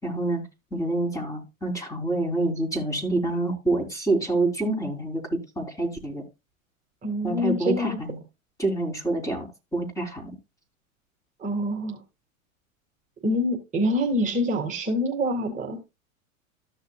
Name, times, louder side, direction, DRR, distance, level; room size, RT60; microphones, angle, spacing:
voice 1, 0.0-0.4 0.7-6.2 7.2-8.2 8.6-9.5 9.7-10.3, right 2 dB, 10° left, 4.1 m, -27 dB
voice 2, 7.0-8.0 11.4-12.0 13.2-15.8, equal, 20° right, 2.3 m, -26 dB
14.0 x 6.6 x 2.5 m
hypercardioid pair, 110°, 41 cm